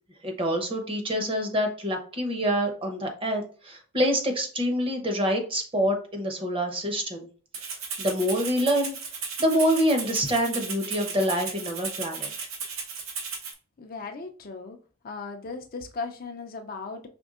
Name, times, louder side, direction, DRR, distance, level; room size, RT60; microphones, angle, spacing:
voice 1, 0.2-7.3 8.0-8.9 9.4-12.3, equal, 25° right, 3 dB, 0.8 m, -26 dB
Rattle (instrument), 7.5-13.5, right 5 dB, 70° right, 0.9 m, -35 dB
voice 2, 13.8-14.8 15.0-17.1, left 4 dB, 45° left, 5 dB, 0.4 m, -37 dB
5.2 x 3.5 x 2.4 m, 0.39 s
head